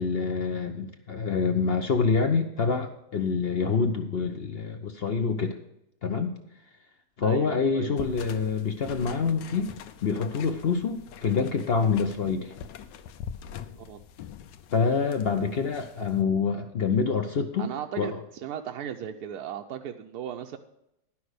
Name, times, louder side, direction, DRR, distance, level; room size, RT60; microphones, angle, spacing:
voice 1, 0.0-5.6 6.0-6.3 7.2-9.7 10.0-12.5 14.7-17.7 18.0-18.2, left 5 dB, 60° left, 6 dB, 0.6 m, -26 dB
voice 2, 7.2-7.9 13.8-14.0 17.6-18.1 18.4-20.6, right 9 dB, 70° right, 4 dB, 1.0 m, -36 dB
sound 1, 8.0-16.2, left 8 dB, 80° left, 1.3 m, -43 dB
11.0 x 6.0 x 6.4 m, 0.83 s
omnidirectional pair, 1.9 m